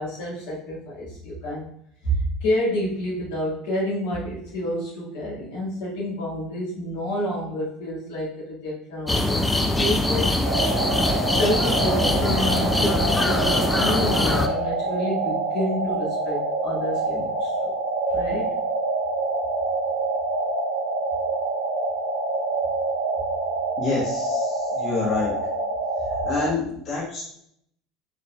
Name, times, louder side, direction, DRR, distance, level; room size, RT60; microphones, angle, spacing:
voice 1, 0.0-1.7 2.0-10.3 11.3-17.7 18.1-18.5, equal, 65° left, -6 dB, 1.8 m, -29 dB
sound 1, 9.1-14.5, left 2 dB, 10° left, 0.5 m, -22 dB
sound 2, 10.4-26.5, right 3 dB, 75° right, 1.2 m, -26 dB
voice 2, 23.8-25.3 26.2-27.3, left 4 dB, 40° left, -7 dB, 1.3 m, -27 dB
5.5 x 4.0 x 2.3 m, 0.71 s
figure-of-eight pair, 70°, 0 cm